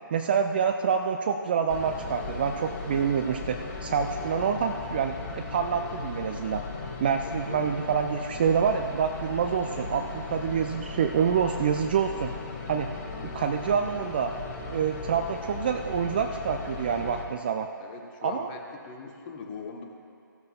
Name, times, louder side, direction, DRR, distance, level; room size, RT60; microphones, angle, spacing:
voice 1, 0.1-6.6 7.0-12.3 12.7-12.9 13.3-14.3 14.7-17.7 18.2-18.5, right 7 dB, 25° right, 5 dB, 0.3 m, -27 dB
sound 1, 1.7-17.2, left 4 dB, 40° left, 1.5 m, -37 dB
voice 2, 7.2-7.8 17.8-19.8, left 5 dB, 25° left, 1 dB, 1.0 m, -41 dB
15.5 x 12.5 x 2.3 m, 2.4 s
figure-of-eight pair, 140°, 11 cm